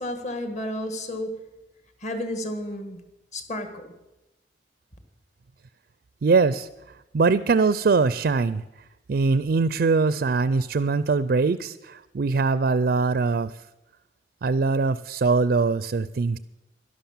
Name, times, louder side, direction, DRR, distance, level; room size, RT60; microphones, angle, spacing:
voice 1, 0.0-1.3 2.0-3.0 3.3-3.8, left 1 dB, 40° left, 7 dB, 1.6 m, -31 dB
voice 2, 6.2-6.7 7.1-8.6 9.1-13.5 14.4-16.4, right 4 dB, 55° right, 15 dB, 0.4 m, -22 dB
11.5 x 11.5 x 7.2 m, 0.98 s
head